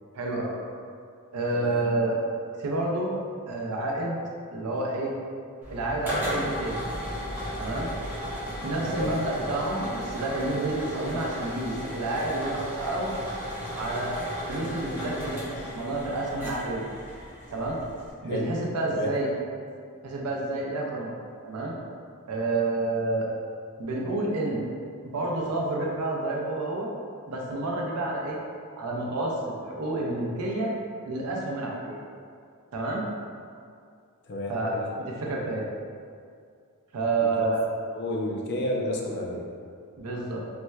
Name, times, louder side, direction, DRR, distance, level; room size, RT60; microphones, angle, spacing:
voice 1, 0.1-0.5 1.3-2.2 2.6-3.1 3.5-4.2 4.5-5.1 5.7-6.8 7.6-7.9 8.6-13.1 13.7-14.1 14.5-16.9 17.5-17.8 18.2-19.3 20.0-21.1 21.4-21.7 22.3-23.3 23.8-24.6 25.0-26.9 27.3-28.4 28.8-30.7 31.1-32.0 32.7-33.1 34.5-34.7 35.0-35.6 36.9-37.6 40.0-40.4, right 2 dB, 80° right, -2 dB, 0.5 m, -29 dB
voice 2, 1.5-1.8 8.9-9.1 18.3-18.5 18.9-19.1 34.3-34.9 37.4-37.5 37.9-39.4, left 1 dB, 50° left, 0 dB, 0.4 m, -31 dB
sound 1, 5.6-18.1, equal, 10° right, 0.7 m, -35 dB
4.1 x 2.2 x 2.2 m, 2.3 s
head